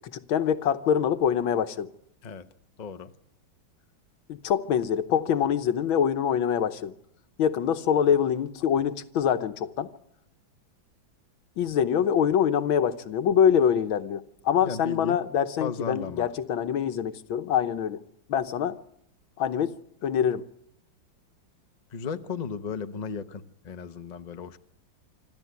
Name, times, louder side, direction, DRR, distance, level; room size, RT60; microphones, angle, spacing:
voice 1, 0.1-1.9 4.3-6.9 7.4-9.9 11.6-18.0 18.3-18.8 19.4-19.7 20.0-20.4, left 8 dB, 85° left, 1.8 m, -25 dB
voice 2, 2.8-3.1 14.6-15.2 15.6-16.3 21.9-24.6, left 5 dB, 35° left, 0.7 m, -35 dB
26.0 x 13.5 x 9.4 m
omnidirectional pair, 2.1 m